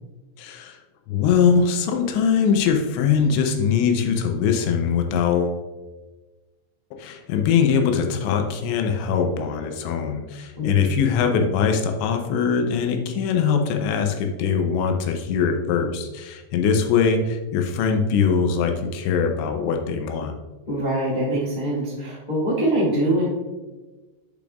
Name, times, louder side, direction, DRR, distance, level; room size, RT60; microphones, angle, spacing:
voice 1, 0.4-0.8 1.1-5.6 7.0-20.3, left 6 dB, 85° left, 4 dB, 2.9 m, -22 dB
voice 2, 10.6-10.9 20.7-23.3, right 1 dB, 50° left, -8 dB, 0.5 m, -23 dB
8.0 x 6.9 x 2.4 m, 1.2 s
omnidirectional pair, 5.2 m